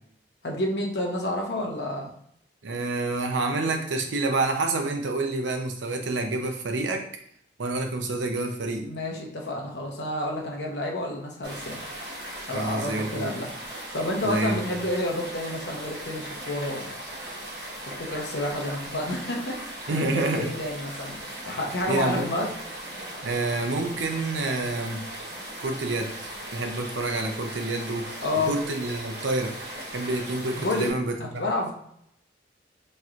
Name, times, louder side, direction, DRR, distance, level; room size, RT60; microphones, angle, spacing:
voice 1, 0.4-2.1 8.8-11.8 12.5-13.5 13.9-16.9 18.0-22.5 28.2-28.5 30.6-30.9 31.2-31.7, left 1 dB, 65° left, 0 dB, 0.8 m, -30 dB
voice 2, 2.6-7.0 7.6-8.9 12.5-13.4 14.2-14.8 19.9-20.5 21.9-22.2 23.2-25.0 25.6-28.1 28.5-29.5 29.9-31.4, right 2 dB, 85° right, 4 dB, 0.6 m, -28 dB
sound 1, 11.4-30.9, right 1 dB, 65° right, 1.1 m, -38 dB
4.3 x 3.1 x 2.5 m, 0.71 s
head